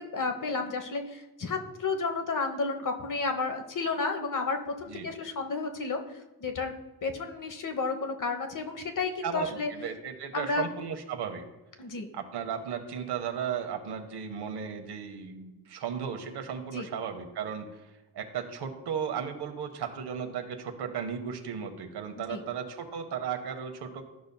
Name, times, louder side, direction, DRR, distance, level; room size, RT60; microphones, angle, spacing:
voice 1, 0.0-6.0 6.4-6.7 7.0-9.7 10.3-10.6 11.8-12.1 16.7-16.9 22.3-22.4, left 4 dB, 50° left, 5 dB, 1.1 m, -32 dB
voice 2, 9.2-11.4 12.1-17.8 18.1-24.0, right 7 dB, 85° right, 6 dB, 0.9 m, -35 dB
13.0 x 5.2 x 2.3 m, 1.0 s
cardioid pair, 55°, 39 cm